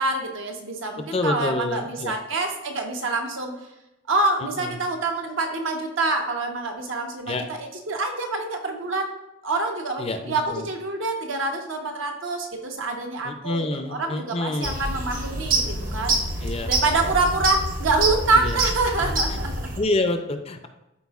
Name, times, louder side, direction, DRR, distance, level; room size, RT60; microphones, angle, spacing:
voice 1, 0.0-3.6 4.1-9.1 9.4-19.7, right 3 dB, 70° right, 2 dB, 1.0 m, -26 dB
voice 2, 1.1-2.1 4.6-4.7 7.3-7.4 10.0-10.6 13.2-14.8 16.4-16.7 18.3-18.6 19.3-19.4 19.8-20.7, left 2 dB, 30° left, 7 dB, 0.5 m, -27 dB
sound 1, 14.6-19.8, right 2 dB, 40° right, 0.9 m, -26 dB
12.5 x 4.3 x 2.4 m, 0.95 s
head